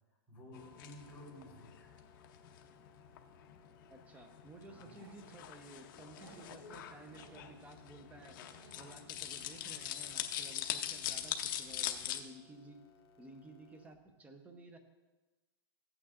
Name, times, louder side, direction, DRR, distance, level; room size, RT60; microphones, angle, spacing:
voice 1, 0.3-1.9 4.7-4.9, left 1 dB, 10° left, -6 dB, 3.6 m, -53 dB
sound 1, 0.5-14.0, left 3 dB, 85° left, 1.0 m, -65 dB
sound 2, 0.5-12.2, left 11 dB, 55° left, 0.7 m, -43 dB
voice 2, 3.9-8.4 8.8-12.8 13.2-14.8, right 2 dB, 10° right, 6 dB, 0.7 m, -54 dB
Growling, 4.8-5.6 6.1-9.2 9.4-9.6 9.9-10.0, right 6 dB, 75° right, 0.7 m, -61 dB
14.5 x 8.7 x 2.5 m, 1.2 s
supercardioid pair, 145°, 13 cm